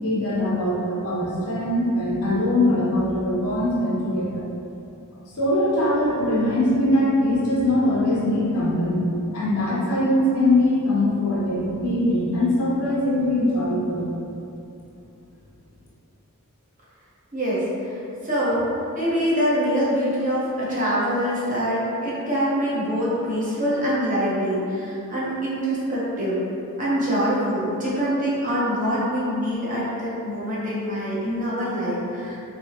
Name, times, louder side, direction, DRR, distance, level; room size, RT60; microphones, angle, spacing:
voice 1, 0.0-4.4 5.3-9.1 9.3-14.0, left 1 dB, 75° left, -7 dB, 0.7 m, -22 dB
voice 2, 17.3-17.6 18.2-18.7 18.9-26.4 26.8-32.4, equal, 35° right, -8 dB, 0.9 m, -24 dB
3.4 x 2.7 x 2.8 m, 2.7 s
head